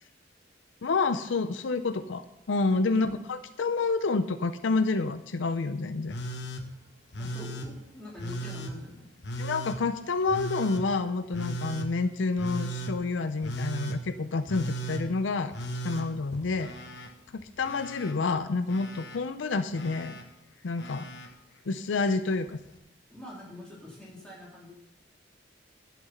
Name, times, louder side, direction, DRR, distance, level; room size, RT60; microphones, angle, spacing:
voice 1, 0.8-6.2 9.4-15.5 15.8-16.7 17.3-20.2 20.6-21.1 21.7-22.5, left 3 dB, 80° left, 12 dB, 0.5 m, -28 dB
Telephone, 6.1-6.6 7.1-7.7 8.2-8.7 9.2-9.8 10.3-10.8 11.3-11.9 12.4-12.9 13.4-14.0 14.5-15.0 15.5-17.1 17.4-18.1 18.7-19.2 19.7-20.2 20.8-21.3 22.5-22.6, right 1 dB, 60° left, 1.2 m, -36 dB
voice 2, 7.2-9.1 22.3-22.4 23.1-24.7, left 1 dB, 5° left, -6 dB, 3.7 m, -44 dB
11.0 x 7.4 x 5.6 m, 0.90 s
head